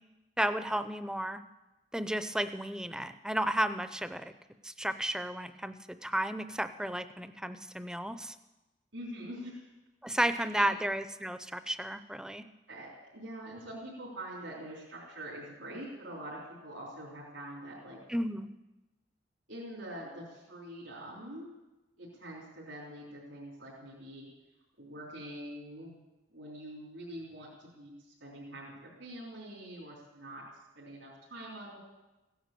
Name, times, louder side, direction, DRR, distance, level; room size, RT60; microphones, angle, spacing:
voice 1, 0.4-1.4 1.9-4.3 4.6-5.8 6.0-8.3 10.0-12.4 18.1-18.5, right 1 dB, 5° right, 11 dB, 0.5 m, -33 dB
voice 2, 8.9-9.7 10.2-10.7 12.7-18.0 19.5-21.5 22.0-24.3 24.8-25.9 26.3-30.4 30.8-31.8, right 1 dB, 85° right, -6 dB, 3.8 m, -45 dB
16.0 x 10.5 x 7.6 m, 1.1 s
head